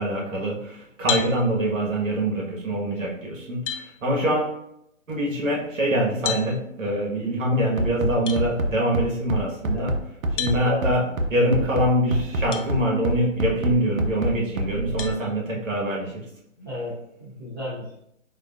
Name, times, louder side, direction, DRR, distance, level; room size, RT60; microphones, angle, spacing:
voice 1, 0.0-4.6 5.1-9.9 10.3-16.3, right 1 dB, 70° right, -2 dB, 1.4 m, -24 dB
sound 1, 1.1-1.3 3.0-3.1 3.7-3.9 6.2-6.5 8.3-8.4 10.4-10.6 12.5-12.7 13.3-13.4 15.0-15.2, left 8 dB, 65° left, 0.6 m, -28 dB
Bass drum, 7.8-15.2, right 1 dB, 90° right, 0.7 m, -26 dB
voice 2, 10.5-10.8 16.6-18.0, equal, 20° right, -10 dB, 0.4 m, -33 dB
4.4 x 2.5 x 2.4 m, 0.76 s
hypercardioid pair, 160°, 40 cm